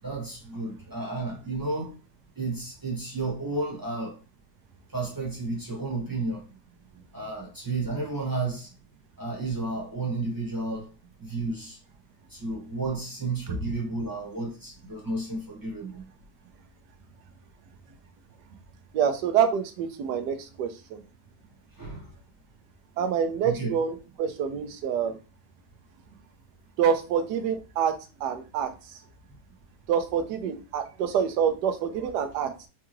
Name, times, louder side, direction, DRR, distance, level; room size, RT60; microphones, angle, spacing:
voice 1, 0.0-1.9 2.3-4.2 4.9-6.4 7.1-8.7 9.2-10.9 11.2-11.8 12.3-16.0 21.8-22.1 23.4-23.7, right 3 dB, 15° right, 0.9 m, -32 dB
voice 2, 18.9-21.0 23.0-25.2 26.8-29.0 29.9-32.7, right 8 dB, 85° right, 1.2 m, -27 dB
4.6 x 2.4 x 3.0 m
omnidirectional pair, 1.8 m